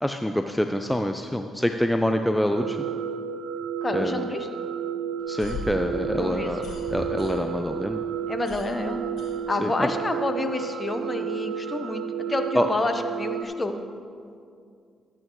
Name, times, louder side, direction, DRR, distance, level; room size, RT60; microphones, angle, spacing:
voice 1, 0.0-2.8 3.9-4.2 5.3-6.6 6.9-8.0 9.6-9.9 12.5-12.7, equal, 5° left, 6 dB, 0.5 m, -25 dB
sound 1, 2.5-13.4, right 7 dB, 75° right, 0.6 m, -32 dB
voice 2, 3.8-4.5 6.1-6.8 7.4-7.6 8.3-9.1 9.5-13.8, left 2 dB, 30° left, 7 dB, 1.0 m, -29 dB
sound 2, 5.2-7.7 8.0-10.0, left 3 dB, 70° left, 1.6 m, -39 dB
13.5 x 8.5 x 3.1 m, 2.3 s
hypercardioid pair, 50°, 0 cm